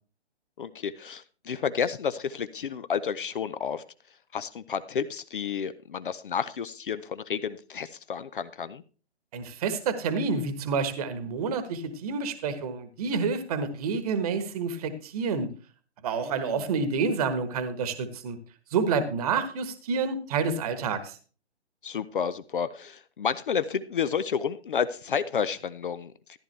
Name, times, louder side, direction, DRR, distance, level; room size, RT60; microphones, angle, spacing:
voice 1, 0.6-3.8 4.3-8.8 16.1-16.6 21.8-26.4, left 7 dB, 50° left, 14 dB, 0.7 m, -31 dB
voice 2, 9.3-15.5 16.0-18.4 18.7-21.2, right 5 dB, 35° right, 11 dB, 1.3 m, -28 dB
14.0 x 11.0 x 3.3 m, 0.37 s
figure-of-eight pair, 135°, 34 cm